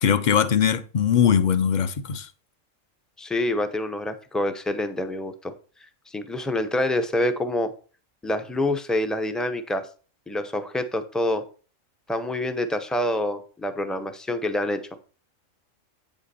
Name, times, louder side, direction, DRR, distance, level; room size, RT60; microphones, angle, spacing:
voice 1, 0.0-2.3, left 8 dB, 55° left, 0.5 m, -21 dB
voice 2, 3.2-5.5 6.1-7.7 8.2-9.9 10.3-11.4 12.1-14.8, left 1 dB, ahead, 0.3 m, -26 dB
8.3 x 5.7 x 4.1 m
omnidirectional pair, 1.3 m